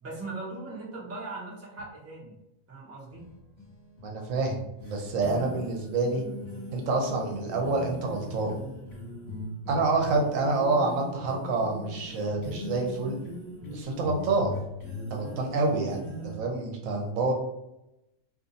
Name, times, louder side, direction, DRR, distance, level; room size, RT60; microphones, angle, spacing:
voice 1, 0.0-2.4 2.7-3.3, right 3 dB, 15° right, -5 dB, 0.6 m, -39 dB
sound 1, 3.1-16.4, left 1 dB, 15° left, 1.3 m, -40 dB
voice 2, 4.0-6.2 6.7-8.6 9.7-13.2 13.7-14.5 15.1-17.3, right 3 dB, 75° right, 2 dB, 1.0 m, -27 dB
2.6 x 2.4 x 3.9 m, 0.88 s
omnidirectional pair, 1.4 m